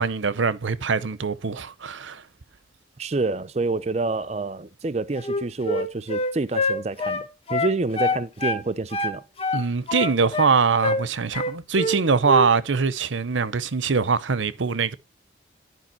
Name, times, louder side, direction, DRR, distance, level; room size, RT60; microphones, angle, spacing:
voice 1, 0.0-2.2 9.5-15.0, right 5 dB, 85° right, 0.7 m, -23 dB
voice 2, 3.0-9.2, right 3 dB, 35° right, 0.5 m, -27 dB
Wind instrument woodwind instrument, 5.2-8.6 8.9-10.5 10.8-11.0 11.3-12.0 12.2-12.5, left 2 dB, 30° left, 1.1 m, -26 dB
11.0 x 5.2 x 4.3 m
head